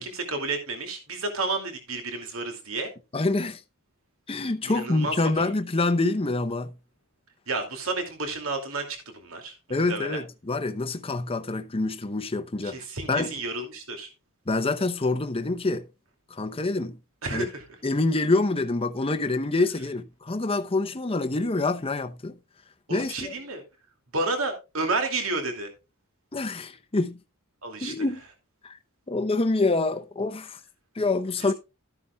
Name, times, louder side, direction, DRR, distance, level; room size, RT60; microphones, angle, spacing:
voice 1, 0.0-2.9 4.6-5.1 5.4-5.5 7.5-10.2 12.6-14.1 17.2-17.6 22.9-23.6 24.1-25.7 27.6-27.9, right 3 dB, 65° right, 2.6 m, -31 dB
voice 2, 3.1-3.6 4.3-6.7 9.7-12.8 13.1-13.3 14.5-15.8 16.3-17.0 17.3-17.5 17.8-22.4 22.9-23.3 26.3-27.2 27.8-28.2 28.6-28.8 29.1-30.6 31.0-31.5, left 2 dB, 25° left, 0.7 m, -26 dB
13.0 x 9.6 x 2.3 m
head